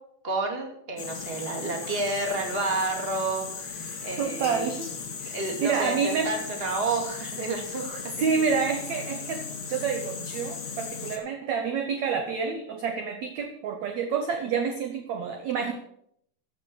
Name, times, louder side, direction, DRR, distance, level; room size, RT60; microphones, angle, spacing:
voice 1, 0.2-4.7 5.3-8.4 15.6-15.7, right 2 dB, 20° right, 1 dB, 1.9 m, -30 dB
sound 1, 1.0-11.2, left 5 dB, 40° left, 2.3 m, -37 dB
voice 2, 4.2-4.9 5.2-6.3 8.2-15.7, right 6 dB, 70° right, 5 dB, 1.7 m, -28 dB
14.5 x 7.5 x 6.3 m, 0.70 s
omnidirectional pair, 4.6 m